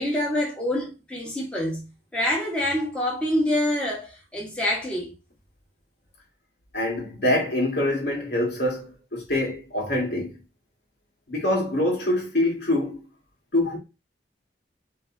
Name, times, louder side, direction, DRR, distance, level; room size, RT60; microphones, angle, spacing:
voice 1, 0.0-1.8 2.1-5.1, left 1 dB, 5° left, 1.5 m, -26 dB
voice 2, 6.7-10.4 11.3-13.0 13.5-13.8, left 1 dB, 70° left, 2.1 m, -25 dB
5.3 x 3.2 x 2.7 m
head